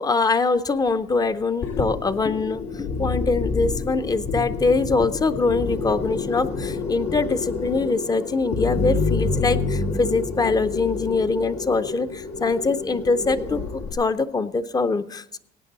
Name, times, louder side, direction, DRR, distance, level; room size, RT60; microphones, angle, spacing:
voice 1, 0.0-15.4, left 3 dB, 20° left, 12 dB, 0.6 m, -23 dB
sound 1, 1.6-13.9, left 4 dB, 90° left, 1.9 m, -28 dB
16.0 x 8.9 x 4.0 m, 0.73 s
cardioid pair, 110°, 17 cm